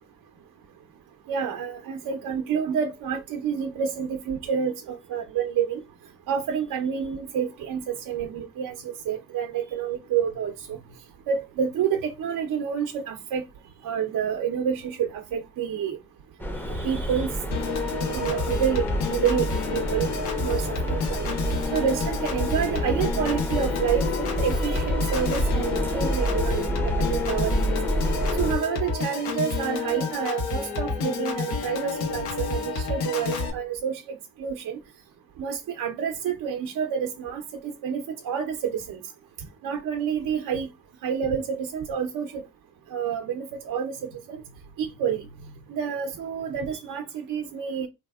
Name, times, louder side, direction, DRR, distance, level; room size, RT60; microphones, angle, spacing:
voice 1, 1.3-5.8 6.3-8.8 9.1-10.8 11.3-13.4 13.8-16.0 16.7-17.3 18.1-19.5 19.7-20.1 20.4-20.6 20.9-21.3 21.7-27.7 28.4-34.8 35.4-39.0 39.6-40.7 41.0-42.4 42.9-44.0 44.3-44.4 44.8-45.2 45.7-47.9, right 7 dB, 60° right, 0.7 m, -28 dB
sound 1, 16.4-28.6, right 1 dB, 5° left, 0.6 m, -29 dB
Piano / Organ, 17.5-33.5, left 4 dB, 85° left, 1.1 m, -29 dB
3.3 x 2.9 x 2.3 m
supercardioid pair, 75°, 37 cm